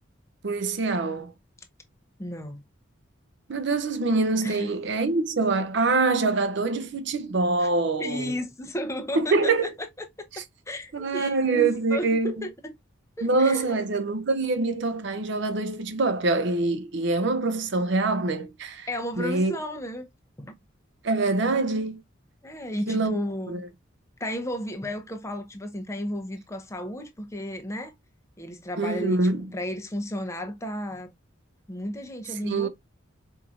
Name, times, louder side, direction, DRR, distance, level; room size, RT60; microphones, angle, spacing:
voice 1, 0.4-1.3 3.5-8.4 9.1-9.7 10.9-12.3 13.2-18.9 19.2-19.5 21.0-22.0 22.9-23.2 23.5-23.6 28.8-29.5 32.4-32.7, right 3 dB, 60° right, 0.6 m, -25 dB
voice 2, 2.2-2.6 4.4-4.8 7.6-7.7 8.0-9.5 9.8-10.1 10.4-12.7 13.2-13.8 18.9-20.1 20.4-20.5 22.4-23.6 24.2-27.9 28.4-29.2 29.5-31.1 31.7-32.7, equal, 15° left, 0.6 m, -33 dB
4.6 x 2.6 x 2.3 m
head